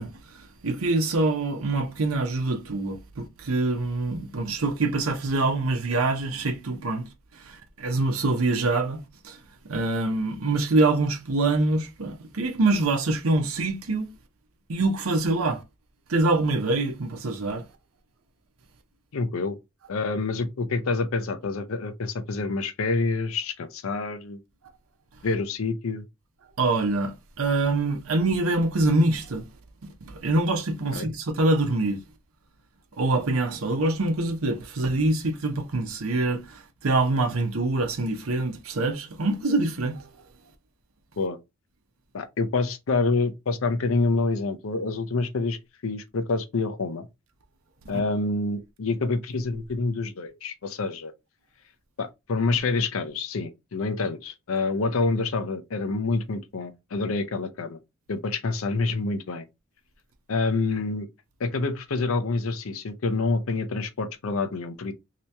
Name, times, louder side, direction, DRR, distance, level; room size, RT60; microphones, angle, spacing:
voice 1, 0.0-9.4 9.7-14.1 14.7-15.6 16.1-17.6 26.6-29.4 30.0-32.0 33.0-40.1 47.9-48.0, right 2 dB, 85° right, 0.7 m, -25 dB
voice 2, 19.1-19.6 19.9-24.4 25.2-26.0 30.9-31.1 41.2-41.4 42.1-47.1 47.9-51.1 52.0-57.8 58.1-59.4 60.3-61.1 61.4-64.9, left 3 dB, 75° left, 0.6 m, -27 dB
2.9 x 2.8 x 3.3 m
head